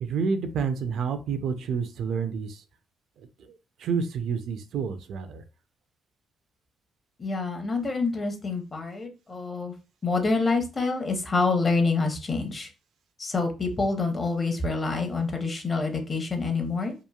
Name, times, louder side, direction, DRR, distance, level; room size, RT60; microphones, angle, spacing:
voice 1, 0.0-2.6 3.8-5.4, right 6 dB, 75° right, 9 dB, 0.4 m, -29 dB
voice 2, 7.2-9.7 10.0-12.7 13.2-16.9, left 3 dB, 30° left, 4 dB, 0.7 m, -27 dB
2.9 x 2.4 x 2.3 m, 0.31 s
cardioid pair, 90°, 0 cm